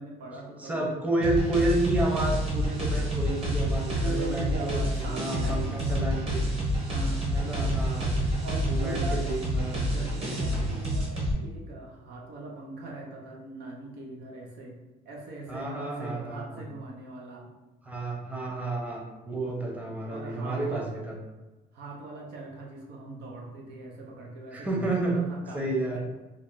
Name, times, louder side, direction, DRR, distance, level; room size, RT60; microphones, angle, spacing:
voice 1, 0.0-1.0 4.0-6.5 6.9-7.2 8.4-9.3 9.9-14.8 15.0-17.5 20.1-20.9 21.7-26.0, right 2 dB, 80° right, -1 dB, 0.9 m, -40 dB
voice 2, 0.6-6.4 7.3-8.1 8.7-10.4 15.5-16.6 17.8-21.1 24.5-25.2 25.5-26.0, right 2 dB, 10° right, -2 dB, 0.8 m, -31 dB
sound 1, 1.2-11.3, equal, 35° right, 1.4 m, -28 dB
3.3 x 2.4 x 3.9 m, 1.1 s
cardioid pair, 110°, 17 cm